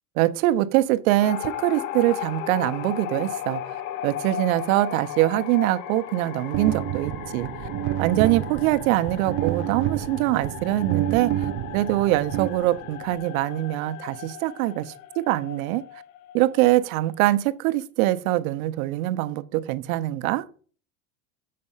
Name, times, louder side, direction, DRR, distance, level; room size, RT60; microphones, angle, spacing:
voice 1, 0.2-3.8 4.0-7.5 8.0-15.8 16.3-20.5, right 16 dB, 75° right, 0.8 m, -23 dB
sound 1, 1.2-17.1, left 12 dB, 65° left, 0.7 m, -36 dB
sound 2, 6.5-13.1, right 14 dB, 45° right, 0.5 m, -29 dB
7.5 x 4.3 x 5.6 m
supercardioid pair, 115°, 43 cm